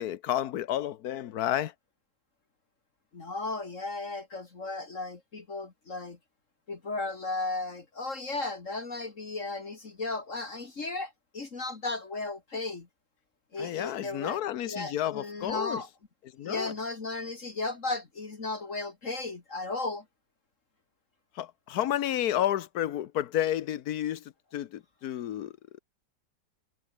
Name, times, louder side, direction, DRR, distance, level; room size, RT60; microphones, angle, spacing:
voice 1, 0.0-1.7 13.6-15.8 16.4-16.7 21.3-24.2 24.5-25.5, left 11 dB, 65° left, 1.3 m, -31 dB
voice 2, 3.1-6.2 6.7-12.9 13.5-14.4 14.7-15.9 16.4-20.0, left 3 dB, 45° left, 2.5 m, -35 dB
omnidirectional pair, 1.8 m